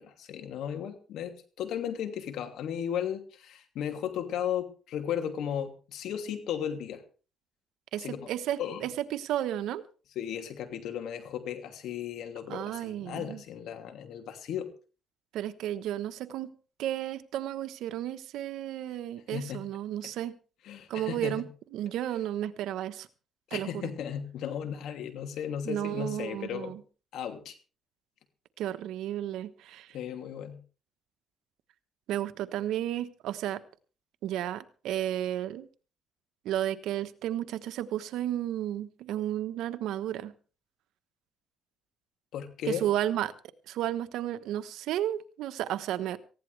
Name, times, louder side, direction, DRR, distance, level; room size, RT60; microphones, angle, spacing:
voice 1, 0.0-7.0 8.0-8.2 8.6-8.9 10.1-14.7 19.3-19.6 20.6-21.4 23.5-26.7 27.1-27.5 29.9-30.6 42.3-42.9, left 9 dB, 80° left, 6 dB, 2.8 m, -35 dB
voice 2, 7.9-9.8 12.5-13.4 15.3-16.5 16.8-20.3 20.9-21.4 21.7-23.1 23.5-23.9 25.6-26.8 28.6-29.9 32.1-33.6 34.2-35.7 36.4-40.3 42.7-43.3 43.7-46.2, right 12 dB, 85° right, 11 dB, 1.1 m, -33 dB
19.0 x 15.5 x 3.4 m, 0.36 s
cardioid pair, 90°, 0 cm